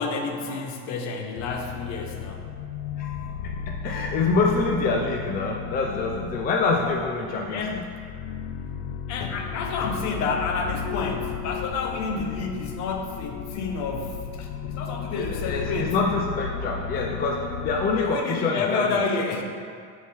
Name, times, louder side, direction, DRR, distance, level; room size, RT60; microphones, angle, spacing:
voice 1, 0.0-2.4 7.5-7.7 9.1-16.0 17.9-19.4, left 4 dB, 60° left, 3 dB, 0.9 m, -29 dB
sound 1, 1.4-18.1, left 7 dB, 85° left, 0.5 m, -34 dB
voice 2, 3.4-7.9 15.1-19.0, left 4 dB, 30° left, 1 dB, 0.5 m, -26 dB
6.8 x 4.7 x 4.4 m, 2.2 s
cardioid pair, 155°, 32 cm